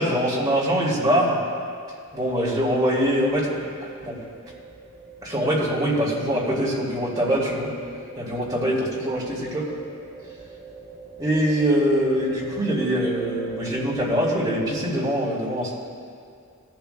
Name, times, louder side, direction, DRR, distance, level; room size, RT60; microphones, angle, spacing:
voice 1, 0.0-1.4 2.1-4.2 5.2-7.7 8.2-9.7 11.2-15.7, equal, 20° right, -5 dB, 2.3 m, -23 dB
sound 1, 2.1-14.9, right 3 dB, 55° right, 2.9 m, -42 dB
18.0 x 11.5 x 2.3 m, 2.3 s
head